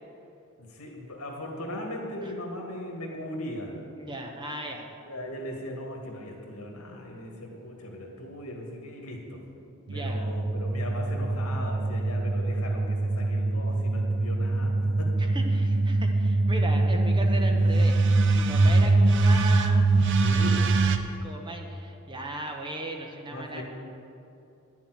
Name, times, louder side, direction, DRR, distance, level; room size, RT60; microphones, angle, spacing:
voice 1, 0.6-3.8 5.1-9.4 9.9-15.1 20.2-20.6 23.3-23.6, left 1 dB, 80° left, 1 dB, 2.0 m, -38 dB
voice 2, 4.0-4.9 9.9-10.3 15.2-17.9 18.3-20.1 21.2-23.6, right 1 dB, 20° right, 2 dB, 1.0 m, -37 dB
sound 1, 9.9-21.0, right 2 dB, 55° right, 0.6 m, -23 dB
9.8 x 7.2 x 7.8 m, 2.7 s
head